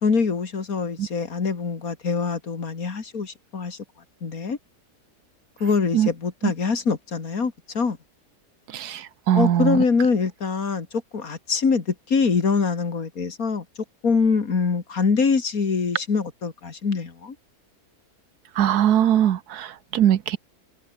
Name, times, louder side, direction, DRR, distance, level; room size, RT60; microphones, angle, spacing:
voice 1, 0.0-3.8 4.2-4.6 5.6-8.0 9.3-10.9 11.1-13.6 14.0-17.3, left 5 dB, 65° left, 2.7 m, -24 dB
voice 2, 8.7-9.8 18.6-20.4, right 10 dB, 80° right, 1.5 m, -21 dB
omnidirectional pair, 1.7 m